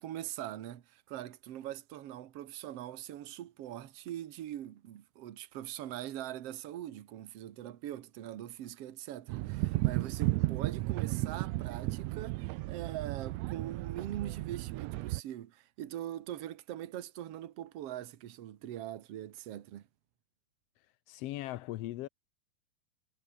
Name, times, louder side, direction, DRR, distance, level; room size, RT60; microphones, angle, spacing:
voice 1, 0.0-19.8, right 12 dB, 55° right, 2.1 m, -42 dB
sound 1, 9.3-15.2, right 19 dB, 85° right, 1.5 m, -34 dB
voice 2, 21.1-22.1, left 15 dB, 85° left, 1.4 m, -38 dB
omnidirectional pair, 3.7 m